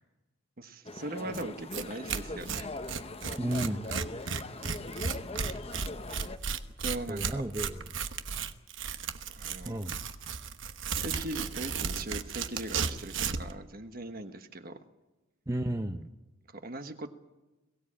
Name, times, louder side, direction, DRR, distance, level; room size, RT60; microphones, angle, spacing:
voice 1, 0.6-2.7 3.9-4.0 6.8-7.4 9.4-9.9 10.9-14.8 16.5-17.1, right 1 dB, 45° right, 8 dB, 1.3 m, -40 dB
sound 1, 0.8-6.4, left 2 dB, 30° left, 0.9 m, -41 dB
Tearing, 1.3-1.4 1.7-1.8 2.1-13.5, right 6 dB, 60° right, 1.1 m, -34 dB
voice 2, 3.4-3.8 7.1-7.8 9.7-10.0 15.5-16.1, right 1 dB, 15° right, 7 dB, 0.6 m, -32 dB
22.0 x 16.0 x 8.7 m, 1.1 s
head